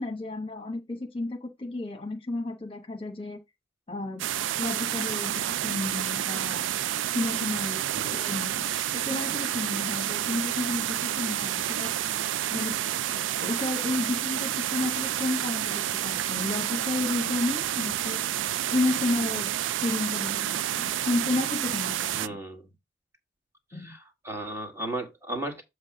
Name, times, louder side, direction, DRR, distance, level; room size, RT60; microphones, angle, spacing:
voice 1, 0.0-3.4 3.9-4.3 4.6-6.7 7.1-7.8 8.1-8.7 8.9-11.9 12.5-12.8 13.1-18.2 18.7-22.4 23.7-23.9, left 2 dB, 30° left, 1.2 m, -32 dB
sound 1, 4.2-22.3, right 11 dB, 90° right, 0.4 m, -29 dB
voice 2, 7.9-8.2 22.1-22.6 23.7-25.6, right 1 dB, 15° right, 1.8 m, -35 dB
7.6 x 3.3 x 6.1 m
head